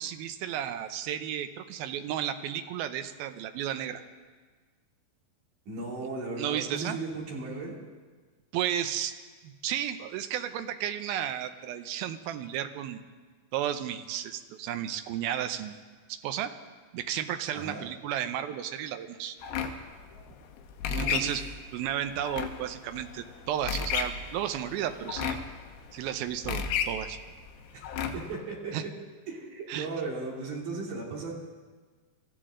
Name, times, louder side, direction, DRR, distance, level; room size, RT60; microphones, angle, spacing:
voice 1, 0.0-4.0 6.4-7.0 8.5-9.1 9.4-13.0 13.5-15.8 16.1-16.5 16.9-19.4 21.0-21.4 21.7-25.4 25.9-27.2 28.7-28.8 29.7-29.9, right 10 dB, 75° right, 8 dB, 2.3 m, -33 dB
voice 2, 5.7-7.8 17.5-17.8 20.9-21.5 27.7-27.8 28.1-28.9 29.3-31.3, right 3 dB, 50° right, -3 dB, 4.2 m, -36 dB
sound 1, 19.4-28.4, left 7 dB, 80° left, 3.2 m, -34 dB
26.0 x 14.5 x 3.8 m, 1.4 s
omnidirectional pair, 4.8 m